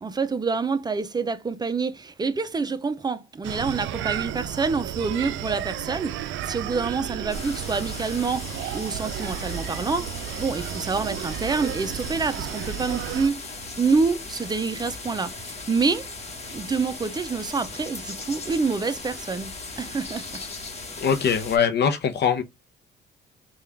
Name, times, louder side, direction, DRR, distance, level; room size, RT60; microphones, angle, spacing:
voice 1, 0.0-16.1 16.5-20.4, right 4 dB, 20° right, 0.5 m, -27 dB
Screaming, 3.4-13.3, right 11 dB, 75° right, 0.4 m, -33 dB
sound 1, 7.3-21.6, left 3 dB, 35° left, 1.2 m, -38 dB
voice 2, 21.0-22.4, left 7 dB, 60° left, 0.6 m, -22 dB
3.5 x 2.4 x 3.3 m
cardioid pair, 90°, 20 cm